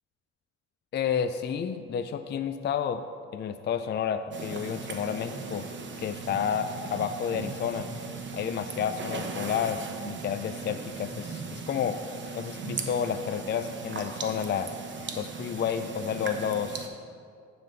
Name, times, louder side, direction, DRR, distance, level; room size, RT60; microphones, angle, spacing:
voice 1, 0.9-3.0 3.3-5.7 6.0-7.9 8.3-12.0 12.3-14.7 15.1-16.9, left 8 dB, 35° left, 9 dB, 0.4 m, -30 dB
sound 1, 4.3-16.9, right 4 dB, 40° right, 0.9 m, -38 dB
9.2 x 3.9 x 6.6 m, 2.3 s
cardioid pair, 90°, 30 cm